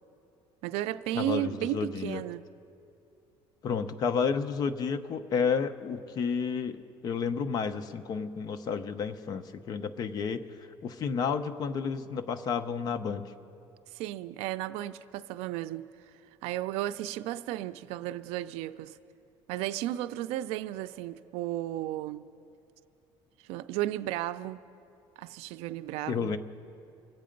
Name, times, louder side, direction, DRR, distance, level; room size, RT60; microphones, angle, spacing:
voice 1, 0.6-2.4 13.9-15.9 16.4-19.0 19.5-22.2 23.4-24.6 25.2-26.4, right 14 dB, 90° right, 0.4 m, -34 dB
voice 2, 1.1-2.2 3.6-10.4 10.8-13.3 26.1-26.4, left 6 dB, 40° left, 0.7 m, -31 dB
25.0 x 8.6 x 5.2 m
cardioid pair, 155°, 10 cm